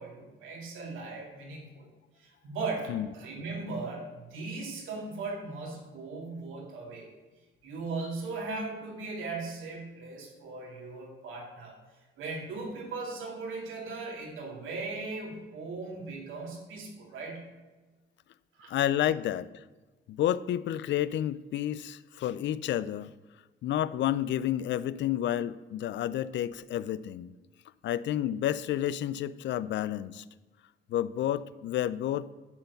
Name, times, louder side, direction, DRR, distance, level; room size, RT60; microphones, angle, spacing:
voice 1, 0.0-1.9 2.2-7.1 7.6-11.8 12.2-17.5 18.5-18.7, right 3 dB, 85° right, 0 dB, 2.5 m, -38 dB
voice 2, 18.7-19.6 20.1-23.1 23.6-27.3 27.8-30.2 30.9-32.3, left 11 dB, 65° left, 17 dB, 0.4 m, -30 dB
11.0 x 4.5 x 6.9 m, 1.2 s
cardioid pair, 90°, 20 cm